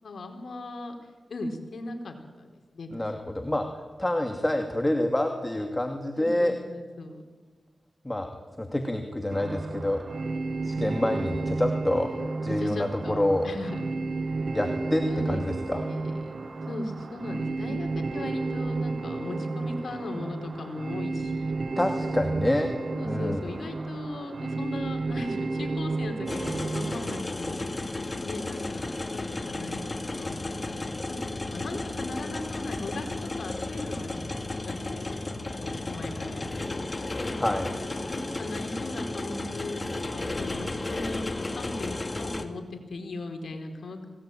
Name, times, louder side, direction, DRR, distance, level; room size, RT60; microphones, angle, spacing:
voice 1, 0.0-1.0 1.3-3.0 6.1-7.2 10.8-10.9 12.5-13.8 15.1-16.3 16.7-21.5 22.9-28.0 28.2-31.2 31.5-34.2 34.7-35.1 35.6-36.8 38.0-44.1, left 2 dB, 75° left, 5 dB, 4.3 m, -38 dB
voice 2, 2.9-6.5 8.0-8.3 8.6-10.0 10.6-12.1 12.4-13.5 14.5-15.8 21.8-22.7 23.0-23.4 37.4-37.7, left 1 dB, 15° left, 4 dB, 2.5 m, -27 dB
sound 1, 9.3-27.2, right 3 dB, 60° right, 1.6 m, -32 dB
sound 2, 26.3-42.4, left 2 dB, 30° left, 2.3 m, -33 dB
26.5 x 18.5 x 9.2 m, 1.4 s
cardioid pair, 70°, 0 cm